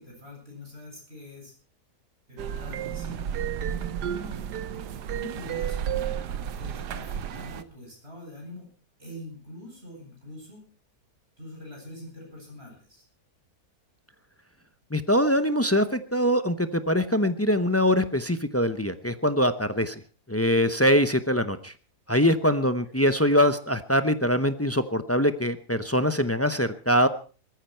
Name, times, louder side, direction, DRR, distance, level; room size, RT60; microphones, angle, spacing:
voice 1, 0.0-1.5 2.3-3.3 4.0-4.4 5.1-6.1 6.6-8.7 9.0-10.6 11.4-13.0 22.6-23.0, left 1 dB, 35° right, -1 dB, 8.1 m, -44 dB
sound 1, 2.4-7.6, right 9 dB, 85° right, 1.5 m, -32 dB
voice 2, 14.9-20.0 20.3-21.7 22.1-27.1, equal, 20° left, 10 dB, 0.4 m, -23 dB
20.0 x 14.0 x 4.5 m, 0.40 s
omnidirectional pair, 1.7 m